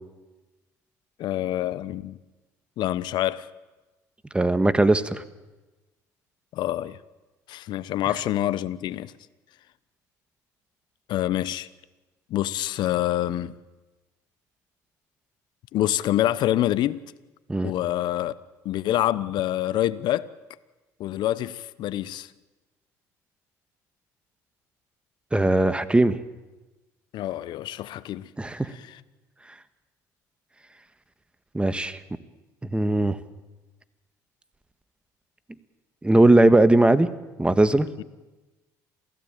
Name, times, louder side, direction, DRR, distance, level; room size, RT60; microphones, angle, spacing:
voice 1, 1.2-2.2 2.8-3.5 6.5-7.0 7.5-9.1 11.1-11.7 12.3-13.5 15.7-17.0 17.6-18.3 18.6-20.3 21.0-22.3 27.1-28.3 28.9-29.0 38.0-38.1, left 13 dB, 65° left, 1.0 m, -26 dB
voice 2, 4.3-5.2 17.5-17.7 25.3-26.2 28.4-28.7 31.5-32.0 32.7-33.2 36.0-37.1 37.4-37.9, right 2 dB, 15° right, 1.6 m, -19 dB
27.5 x 16.5 x 9.1 m
hypercardioid pair, 65°, 8 cm